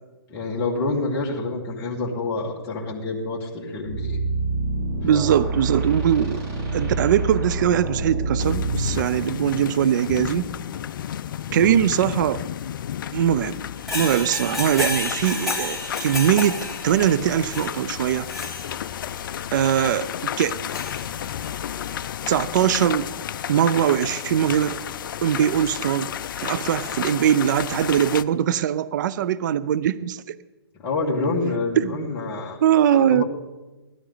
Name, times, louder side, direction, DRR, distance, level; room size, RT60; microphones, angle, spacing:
voice 1, 0.3-4.2 5.0-5.4 11.5-11.7 30.8-32.6 33.1-33.2, left 3 dB, 20° left, -3 dB, 2.1 m, -27 dB
sound 1, 3.9-9.0, right 3 dB, 30° right, 5.1 m, -26 dB
voice 2, 5.0-6.4 6.7-10.5 11.5-12.4 13.1-13.6 13.9-16.6 16.8-18.3 19.5-20.1 20.4-20.6 22.3-23.1 23.5-24.8 25.2-26.1 26.4-30.4 31.8-32.1 32.6-33.2, right 10 dB, 50° right, 16 dB, 0.5 m, -21 dB
sound 2, 8.4-28.2, left 10 dB, 55° left, 0.5 m, -32 dB
sound 3, 13.8-19.2 19.6-19.8 20.4-21.6 21.8-21.9, left 2 dB, ahead, 3.2 m, -31 dB
16.5 x 12.5 x 4.0 m, 1.1 s
hypercardioid pair, 145°, 13 cm